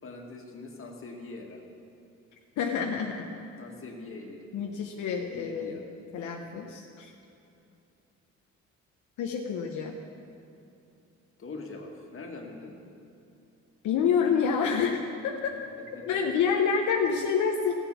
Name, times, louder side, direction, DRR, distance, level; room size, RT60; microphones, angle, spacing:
voice 1, 0.0-1.6 3.6-4.4 4.9-5.8 6.4-6.6 11.4-12.7 16.0-16.2, left 3 dB, 45° left, 1 dB, 2.0 m, -43 dB
voice 2, 2.6-3.3 4.5-5.8 6.1-7.1 9.2-10.0 13.8-15.6 16.1-17.7, left 6 dB, 80° left, 2 dB, 0.9 m, -28 dB
15.0 x 7.1 x 7.2 m, 2.7 s
cardioid pair, 90°, 30 cm